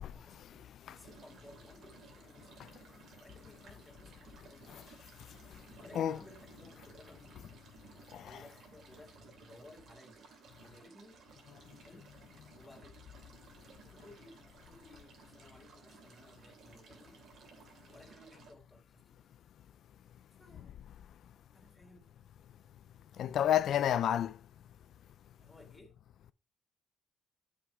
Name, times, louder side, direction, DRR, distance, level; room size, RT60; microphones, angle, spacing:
voice 1, 0.0-5.0 5.8-7.6 8.2-10.3 10.6-11.3 11.8-12.1 12.5-13.1 13.8-19.3 20.4-20.8 21.5-22.1 23.1-23.5 25.3-26.0, left 1 dB, 15° left, 3.2 m, -59 dB
sound 1, 1.0-18.5, right 5 dB, 70° right, 2.7 m, -58 dB
voice 2, 23.2-24.3, left 10 dB, 70° left, 0.5 m, -29 dB
7.9 x 6.2 x 4.7 m
cardioid pair, 90°, 0 cm